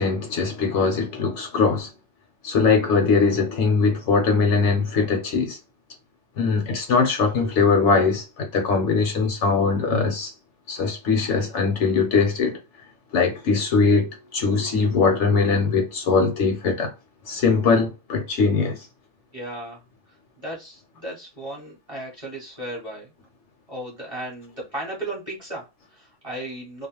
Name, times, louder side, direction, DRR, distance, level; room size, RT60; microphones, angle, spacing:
voice 1, 0.0-1.9 2.4-5.6 6.4-10.3 10.7-12.6 13.1-14.1 14.3-16.9 17.3-18.8, left 4 dB, 65° left, 0.9 m, -21 dB
voice 2, 19.3-19.8 20.1-23.1 23.7-26.9, right 1 dB, 30° right, 0.9 m, -35 dB
2.4 x 2.1 x 2.9 m
omnidirectional pair, 1.4 m